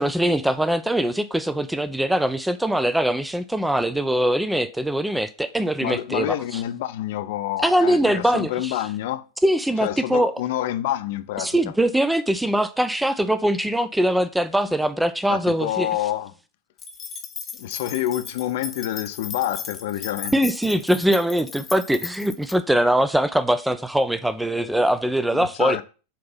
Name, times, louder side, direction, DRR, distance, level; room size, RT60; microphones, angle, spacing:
voice 1, 0.0-6.6 7.6-8.7 9.4-10.3 11.4-15.9 20.3-25.8, right 1 dB, 5° right, 0.4 m, -22 dB
voice 2, 5.8-9.2 9.8-11.6 15.3-16.3 17.6-20.4 25.3-25.8, left 13 dB, 50° left, 0.5 m, -27 dB
sound 1, 16.8-22.5, left 7 dB, 25° left, 0.8 m, -36 dB
7.2 x 2.9 x 5.4 m
figure-of-eight pair, 90°, 0 cm